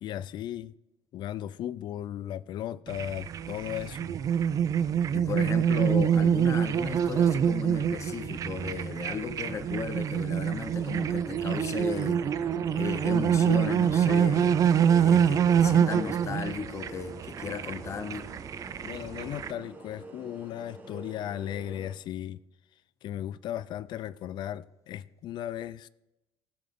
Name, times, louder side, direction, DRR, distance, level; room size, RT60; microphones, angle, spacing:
voice 1, 0.0-0.7 1.1-4.0 18.8-22.4 23.0-25.9, left 11 dB, 45° left, 0.4 m, -36 dB
sound 1, 2.9-19.5, right 8 dB, 35° right, 0.4 m, -26 dB
voice 2, 5.1-12.2 12.7-14.6 14.9-18.3, left 6 dB, 30° left, 0.7 m, -35 dB
sound 2, 10.6-22.0, right 2 dB, 15° right, 1.1 m, -46 dB
17.0 x 7.6 x 3.6 m
cardioid pair, 165°, 10 cm